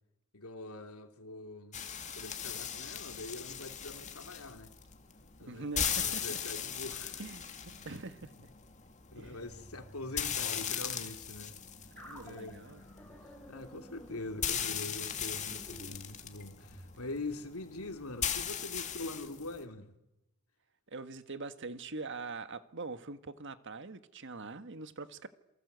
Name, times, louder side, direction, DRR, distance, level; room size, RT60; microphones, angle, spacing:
voice 1, 0.3-1.8 2.1-4.7 5.4-5.7 6.0-7.2 7.7-7.9 9.1-11.6 12.1-12.6 13.5-19.9, left 2 dB, 80° left, 3.0 m, -43 dB
sound 1, 1.7-19.6, left 8 dB, 35° left, 2.2 m, -39 dB
voice 2, 5.5-6.4 7.2-8.5 9.2-9.4 11.9-12.8 20.9-25.3, right 3 dB, 55° right, 1.6 m, -43 dB
sound 2, 12.0-16.9, equal, 5° left, 7.2 m, -53 dB
27.5 x 24.0 x 8.2 m
head